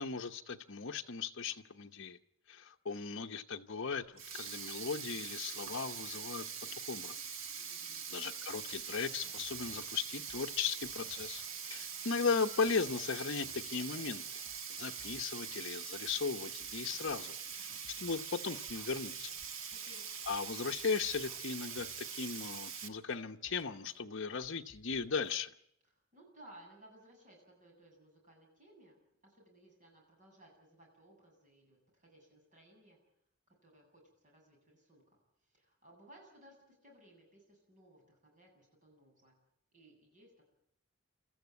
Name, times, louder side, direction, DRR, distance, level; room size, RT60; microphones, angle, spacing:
voice 1, 0.0-2.2 2.5-6.5 6.7-7.2 8.1-14.4 14.7-17.7 18.0-19.3 20.3-25.5, left 5 dB, 60° left, 4 dB, 0.9 m, -37 dB
Sink (filling or washing), 4.2-22.9, right 7 dB, 65° right, 1.5 m, -43 dB
voice 2, 7.5-8.2 19.8-20.1 26.1-33.0 33.5-39.3 39.7-40.4, right 1 dB, 35° right, 0 dB, 8.0 m, -61 dB
sound 1, 8.7-15.6 16.1-24.0 24.4-25.3, left 2 dB, 15° left, 2.9 m, -64 dB
26.5 x 14.0 x 9.5 m, 0.75 s
head